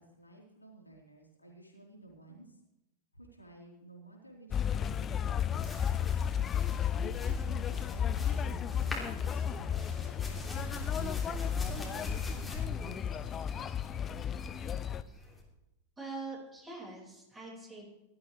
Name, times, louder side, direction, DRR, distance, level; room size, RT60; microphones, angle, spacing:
voice 1, 0.0-2.5 3.1-5.8 7.0-13.3, right 1 dB, 85° left, -2 dB, 3.9 m, -54 dB
sound 1, 4.5-15.0, left 8 dB, 25° left, 0.5 m, -33 dB
sound 2, 5.4-15.4, equal, 5° left, 3.2 m, -45 dB
voice 2, 16.0-17.9, right 3 dB, 15° right, -2 dB, 5.1 m, -43 dB
18.5 x 12.5 x 3.3 m, 0.94 s
figure-of-eight pair, 90°, 0 cm